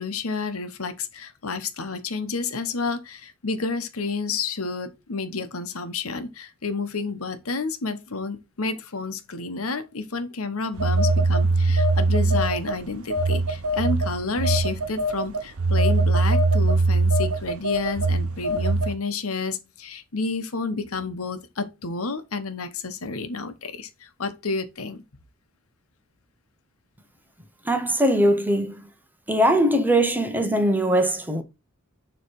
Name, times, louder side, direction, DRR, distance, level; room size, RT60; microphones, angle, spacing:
voice 1, 0.0-25.0, left 4 dB, 80° left, 1.1 m, -30 dB
Telephone, 10.8-12.7 13.1-18.9, right 2 dB, 85° right, 1.0 m, -21 dB
voice 2, 27.7-28.8 29.3-31.4, right 1 dB, 10° right, 0.9 m, -21 dB
7.1 x 3.2 x 4.7 m
head